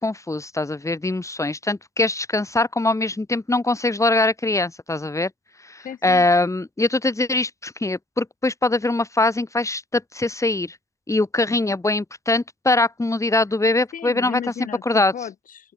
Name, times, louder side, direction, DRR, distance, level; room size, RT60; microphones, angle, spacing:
voice 1, 0.0-5.3 5.6-10.8 11.1-14.4 14.8-15.1, left 2 dB, 20° left, 5.0 m, -22 dB
voice 2, 5.8-6.3 13.9-15.7, left 8 dB, 85° left, 5.5 m, -35 dB
open air
cardioid pair, 80°, 14 cm